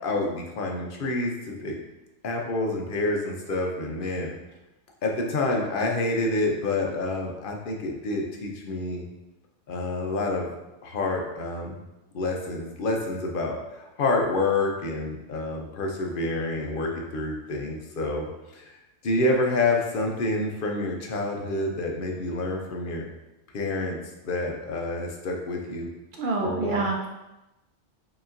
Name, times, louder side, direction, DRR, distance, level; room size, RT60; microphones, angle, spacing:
voice 1, 0.0-1.8 2.2-4.3 5.0-9.0 9.7-10.5 10.8-11.8 12.1-18.3 18.5-18.8 19.0-23.1 23.5-24.0 24.2-25.9 26.4-26.9, left 2 dB, 55° left, 1 dB, 0.6 m, -28 dB
voice 2, 26.2-27.1, right 3 dB, 65° right, 0 dB, 0.5 m, -27 dB
4.8 x 2.9 x 2.5 m, 0.97 s
omnidirectional pair, 1.3 m